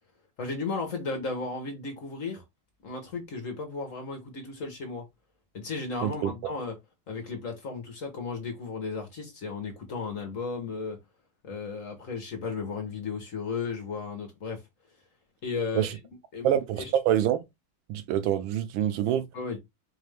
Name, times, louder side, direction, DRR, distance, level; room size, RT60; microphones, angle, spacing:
voice 1, 0.4-2.4 2.8-5.0 5.5-6.7 7.1-11.0 11.4-14.6 15.4-15.9 16.3-16.9 19.3-19.6, left 4 dB, 50° left, 1.1 m, -34 dB
voice 2, 6.0-6.3 15.7-15.9 16.4-17.4 17.9-19.3, right 11 dB, 85° right, 1.4 m, -26 dB
4.5 x 2.5 x 3.2 m
omnidirectional pair, 2.1 m